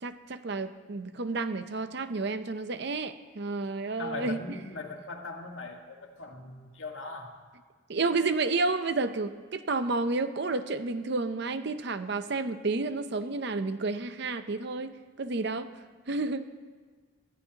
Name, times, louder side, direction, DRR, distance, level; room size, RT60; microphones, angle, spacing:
voice 1, 0.0-4.4 7.9-15.7 16.1-16.5, right 3 dB, 55° right, 10 dB, 0.7 m, -31 dB
voice 2, 4.0-7.4, left 3 dB, 75° left, 2 dB, 1.7 m, -40 dB
20.5 x 14.0 x 2.9 m, 1.4 s
head